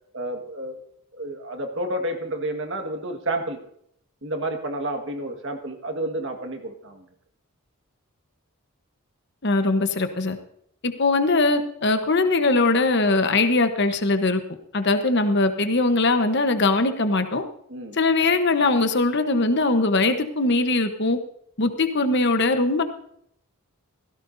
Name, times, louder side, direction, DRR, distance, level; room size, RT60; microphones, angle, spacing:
voice 1, 0.1-0.8 1.2-3.6 4.2-7.0 17.7-18.0, right 1 dB, 55° right, 4 dB, 1.7 m, -30 dB
voice 2, 9.4-10.4 10.8-14.4 14.7-17.4 17.9-21.2 21.6-22.8, left 3 dB, 50° left, 8 dB, 1.1 m, -21 dB
16.5 x 16.5 x 2.7 m, 0.70 s
head